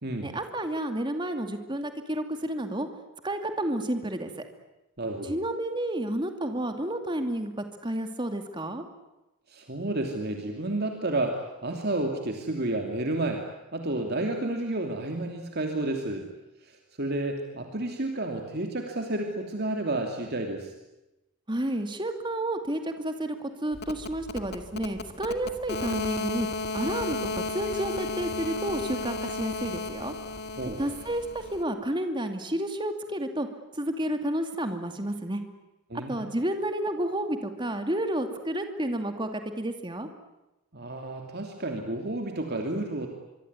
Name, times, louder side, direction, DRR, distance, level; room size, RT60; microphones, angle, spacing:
voice 1, 0.2-2.9 3.2-4.3 5.3-8.8 21.5-26.5 26.7-30.1 30.8-33.5 33.8-35.4 36.1-40.1, right 1 dB, 20° right, 6 dB, 2.5 m, -31 dB
voice 2, 5.0-5.3 9.5-13.4 13.7-16.3 16.6-20.7 30.6-30.8 35.9-36.3 40.7-43.1, right 2 dB, 45° right, 3 dB, 2.8 m, -31 dB
sound 1, 23.7-31.6, left 3 dB, 50° left, 2.0 m, -34 dB
25.0 x 24.0 x 9.8 m, 0.97 s
head